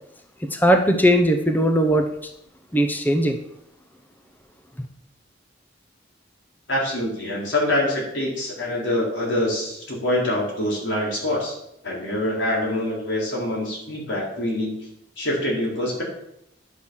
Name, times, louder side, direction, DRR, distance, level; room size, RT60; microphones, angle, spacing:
voice 1, 0.5-2.1 2.7-3.4, equal, 10° left, 5 dB, 0.8 m, -18 dB
voice 2, 6.7-11.6 11.8-14.7 15.2-16.0, left 1 dB, 80° left, -3 dB, 4.5 m, -25 dB
10.0 x 6.3 x 7.3 m, 0.77 s
head